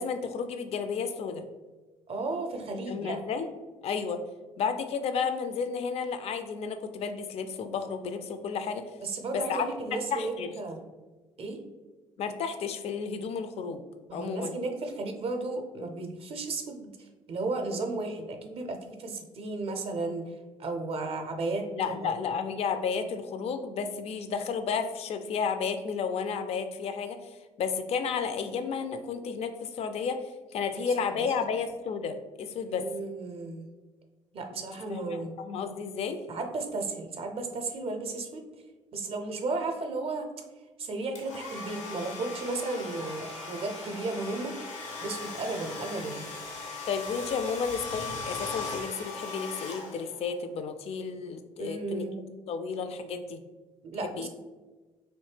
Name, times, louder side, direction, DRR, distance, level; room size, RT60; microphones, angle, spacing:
voice 1, 0.0-1.4 2.9-3.5 3.8-4.2 4.6-8.9 9.3-9.7 9.9-10.5 12.2-13.8 14.1-14.5 21.7-32.8 34.5-34.6 34.9-36.2 46.9-52.1 52.5-53.4 54.0-54.3, left 6 dB, 40° left, 8 dB, 0.4 m, -32 dB
voice 2, 2.1-3.2 9.0-10.8 11.4-11.6 14.1-20.2 20.6-22.1 30.7-31.1 32.6-33.7 34.3-35.3 36.3-38.4 38.9-40.3 40.8-44.5 45.0-46.2 51.6-52.2 53.9-54.3, right 3 dB, 35° right, 4 dB, 0.5 m, -34 dB
Domestic sounds home sounds, 41.1-50.3, left 3 dB, 80° left, 0.6 m, -39 dB
3.1 x 2.7 x 3.3 m, 1.3 s
figure-of-eight pair, 50°, 16 cm